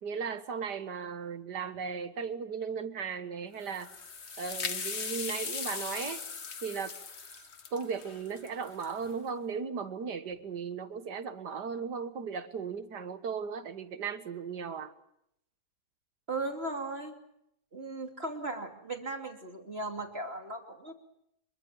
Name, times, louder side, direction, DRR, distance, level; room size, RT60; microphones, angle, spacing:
voice 1, 0.0-3.9 4.4-6.2 6.6-6.9 7.7-14.9, right 6 dB, 70° right, 2.0 m, -36 dB
sound 1, 3.6-9.1, left 5 dB, 40° left, 1.5 m, -39 dB
voice 2, 16.3-17.1 17.7-20.9, right 2 dB, 35° right, 3.1 m, -37 dB
25.5 x 23.5 x 7.4 m
omnidirectional pair, 1.8 m